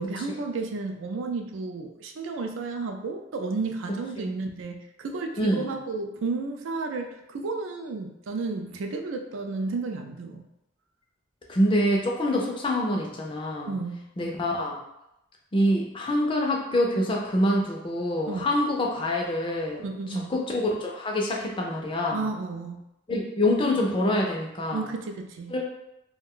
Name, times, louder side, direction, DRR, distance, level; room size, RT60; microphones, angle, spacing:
voice 1, 0.0-10.4 13.7-14.0 18.3-18.4 19.8-20.3 22.1-22.8 24.7-25.5, right 3 dB, 70° right, 4 dB, 0.3 m, -32 dB
voice 2, 5.4-5.8 11.5-13.7 14.2-14.8 15.5-19.8 20.1-22.2 23.1-24.9 25.5-25.6, left 1 dB, 25° left, -1 dB, 0.4 m, -26 dB
2.4 x 2.2 x 3.6 m, 0.86 s
head